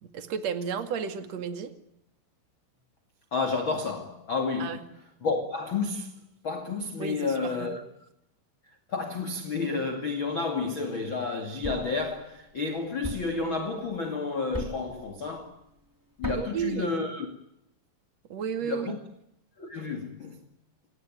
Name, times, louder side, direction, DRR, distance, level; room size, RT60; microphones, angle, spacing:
voice 1, 0.0-1.7 4.6-4.8 7.0-7.7 16.3-16.9 18.3-18.9, right 7 dB, 45° right, 2.3 m, -33 dB
voice 2, 3.3-4.8 5.2-6.1 6.4-7.8 8.9-15.5 16.2-17.3 18.6-19.0 19.6-20.4, left 4 dB, 40° left, 1.8 m, -31 dB
Thump thud, 11.6-12.0 13.0-13.4 14.5-14.9 16.2-16.6, right 1 dB, 5° right, 2.0 m, -35 dB
30.0 x 18.5 x 9.1 m
omnidirectional pair, 5.9 m